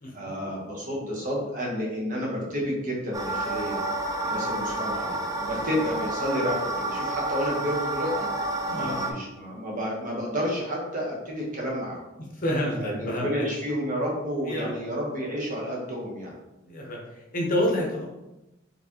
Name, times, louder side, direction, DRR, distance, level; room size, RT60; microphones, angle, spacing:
voice 1, 0.1-3.8 4.2-8.3 8.7-12.0 12.8-16.3, equal, 45° right, -3 dB, 1.1 m, -30 dB
sound 1, 3.1-9.1, right 2 dB, 20° right, 0.4 m, -30 dB
voice 2, 4.2-4.8 8.7-9.0 12.3-13.5 14.5-14.7 16.6-18.0, equal, 45° left, -2 dB, 0.9 m, -29 dB
4.3 x 3.3 x 2.9 m, 0.98 s
head